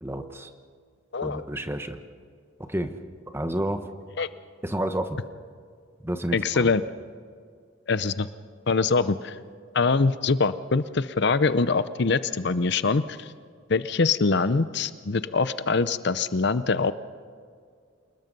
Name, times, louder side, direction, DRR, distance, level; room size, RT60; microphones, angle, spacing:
voice 1, 0.0-0.5 1.2-2.0 2.7-2.9 3.3-3.8 4.6-5.2 6.0-6.7, right 1 dB, 10° right, 8 dB, 1.2 m, -30 dB
voice 2, 1.1-1.4 4.2-4.3 6.3-6.8 7.9-8.3 8.7-9.4 9.7-13.3 13.7-16.9, left 4 dB, 55° left, 14 dB, 0.7 m, -23 dB
28.0 x 20.5 x 5.4 m, 2.1 s
head